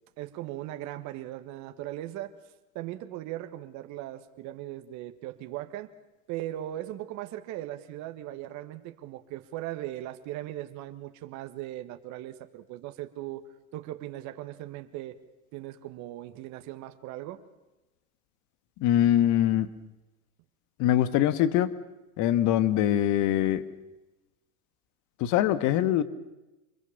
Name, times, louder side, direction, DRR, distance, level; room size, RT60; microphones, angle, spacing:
voice 1, 0.2-2.4 2.7-5.9 6.3-13.4 13.7-15.2 15.5-17.4, right 14 dB, 45° right, 8 dB, 1.5 m, -38 dB
voice 2, 18.8-19.7 20.8-21.7 22.2-23.7 25.2-26.0, left 11 dB, 45° left, 14 dB, 1.6 m, -23 dB
25.5 x 22.0 x 7.2 m, 1.0 s
hypercardioid pair, 110°, 42 cm